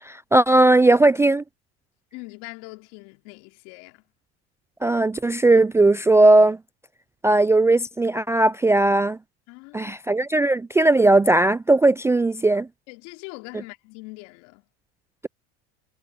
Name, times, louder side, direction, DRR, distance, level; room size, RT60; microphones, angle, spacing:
voice 1, 0.0-1.4 4.8-6.6 7.2-9.2 9.7-12.7, right 2 dB, 10° right, 0.4 m, -18 dB
voice 2, 2.1-4.0 9.5-9.9 12.5-14.7, left 27 dB, 65° left, 3.1 m, -42 dB
hypercardioid pair, 90°, 34 cm